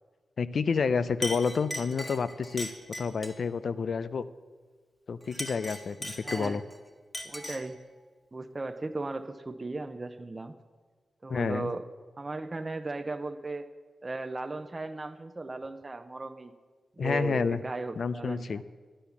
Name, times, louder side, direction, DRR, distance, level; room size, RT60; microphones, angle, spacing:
voice 1, 0.4-2.7 3.0-4.3 5.1-6.6 11.3-11.7 17.0-17.6 18.0-18.6, left 5 dB, 65° left, 15 dB, 0.5 m, -29 dB
Chink clink, 0.7-0.9 1.2-3.4 5.2-6.8 7.1-7.7, equal, 20° left, 1.5 m, -39 dB
voice 2, 6.2-6.6 7.2-7.8 8.3-10.5 11.2-11.8 12.2-13.7 14.0-16.5 17.0-18.6, right 2 dB, 25° right, 7 dB, 0.6 m, -36 dB
12.0 x 10.0 x 7.0 m, 1.5 s
wide cardioid pair, 95°, 0 cm